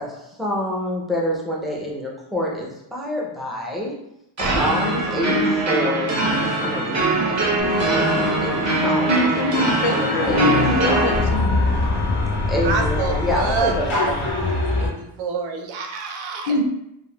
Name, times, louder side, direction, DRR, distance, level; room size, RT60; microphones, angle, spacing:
voice 1, 0.0-3.9 4.4-9.3 9.9-11.3 12.2-14.7, left 1 dB, ahead, -4 dB, 0.4 m, -27 dB
sound 1, 4.4-11.2, right 2 dB, 35° right, 0.7 m, -22 dB
sound 2, 7.6-14.9, left 2 dB, 90° left, 0.8 m, -25 dB
voice 2, 9.1-11.6 16.5-16.6, left 2 dB, 65° left, 3 dB, 0.5 m, -23 dB
voice 3, 12.6-16.6, right 5 dB, 80° right, 4 dB, 0.6 m, -28 dB
3.5 x 2.0 x 2.2 m, 0.82 s
wide cardioid pair, 145°, 47 cm